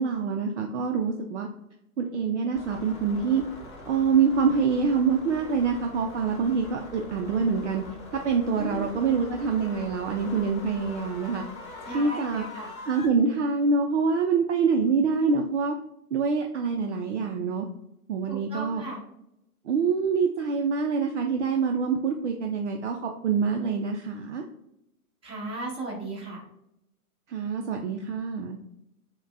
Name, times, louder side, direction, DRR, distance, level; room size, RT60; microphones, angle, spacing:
voice 1, 0.0-1.5 2.0-3.4 3.9-7.8 8.2-11.4 11.9-12.4 12.8-15.8 16.1-17.7 18.1-18.8 19.6-24.4 27.3-28.6, right 5 dB, 50° right, 3 dB, 0.5 m, -25 dB
sound 1, 2.5-13.1, left 2 dB, 20° left, 0.4 m, -43 dB
voice 2, 8.6-9.2 11.8-12.7 18.3-19.0 25.2-26.4, right 2 dB, 10° right, -5 dB, 1.1 m, -36 dB
5.1 x 2.2 x 2.5 m, 0.81 s
figure-of-eight pair, 115°, 46 cm